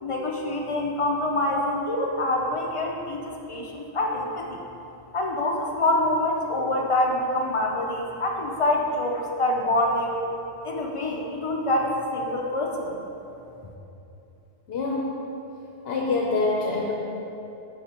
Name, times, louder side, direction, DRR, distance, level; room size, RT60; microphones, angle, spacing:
voice 1, 0.0-4.6 5.1-10.2 10.6-13.0, left 1 dB, 50° left, 0 dB, 0.4 m, -26 dB
voice 2, 14.7-15.2 15.8-16.9, left 3 dB, 65° left, -2 dB, 0.8 m, -25 dB
6.6 x 5.5 x 2.9 m, 2.9 s
omnidirectional pair, 1.2 m